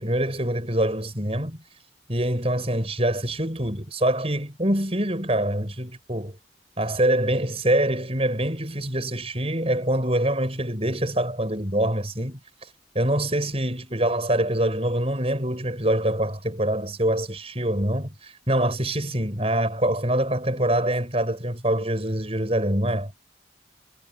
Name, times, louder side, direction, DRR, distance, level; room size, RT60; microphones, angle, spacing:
voice 1, 0.0-1.6 2.1-6.3 6.8-23.1, right 1 dB, 30° right, 6.7 m, -25 dB
head